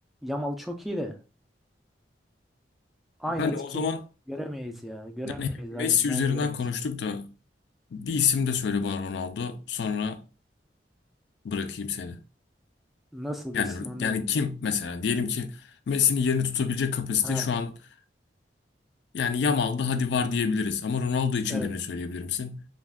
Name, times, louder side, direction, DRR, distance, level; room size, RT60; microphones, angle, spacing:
voice 1, 0.2-1.1 3.2-3.9 4.3-6.6 13.1-14.3 17.2-17.5 21.5-21.7, equal, ahead, 0.3 m, -34 dB
voice 2, 3.4-4.0 5.4-7.3 7.9-10.2 11.4-12.2 13.5-15.6 15.9-17.7 19.1-22.7, left 6 dB, 70° left, 0.4 m, -27 dB
2.4 x 2.2 x 3.4 m
head